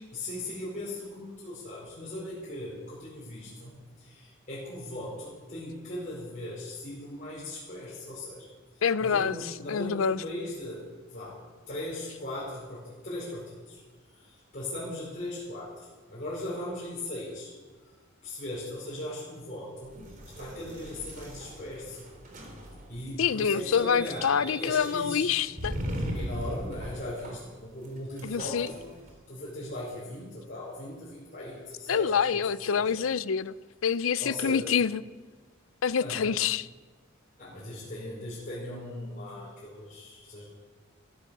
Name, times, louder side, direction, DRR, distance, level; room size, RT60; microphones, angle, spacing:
voice 1, 0.1-10.8 11.1-11.4 11.7-13.8 14.1-17.5 17.8-17.9 18.2-22.0 22.9-25.2 26.1-28.9 29.3-32.4 32.7-32.9 34.2-34.7 36.0-36.3 37.4-40.4, left 1 dB, 40° left, 5.1 m, -38 dB
voice 2, 8.8-10.2 23.2-25.8 28.2-28.7 31.9-33.5 33.8-35.0 35.8-36.7, left 7 dB, 80° left, 0.5 m, -26 dB
sound 1, 19.8-29.1, equal, 45° right, 3.5 m, -39 dB
15.0 x 13.0 x 6.6 m
head